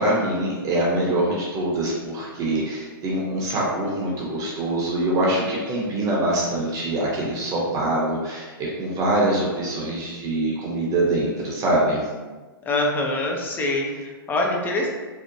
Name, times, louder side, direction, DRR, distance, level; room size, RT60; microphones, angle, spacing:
voice 1, 0.0-12.1, right 1 dB, 30° right, -4 dB, 0.7 m, -24 dB
voice 2, 12.6-14.9, left 2 dB, 15° left, 0 dB, 0.4 m, -24 dB
2.6 x 2.1 x 2.6 m, 1.3 s
hypercardioid pair, 125°, 12 cm